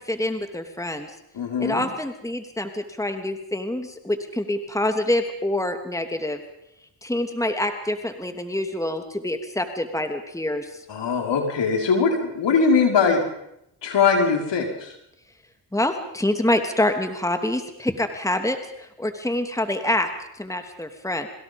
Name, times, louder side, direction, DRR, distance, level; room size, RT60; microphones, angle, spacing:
voice 1, 0.1-1.1 1.6-6.4 7.0-10.7 15.7-20.1 20.3-21.3, left 1 dB, 5° left, 6 dB, 3.0 m, -26 dB
voice 2, 1.3-1.9 10.9-13.2 13.8-14.9, left 5 dB, 65° left, 3 dB, 5.3 m, -21 dB
26.5 x 23.5 x 5.4 m, 0.81 s
hypercardioid pair, 45°, 47 cm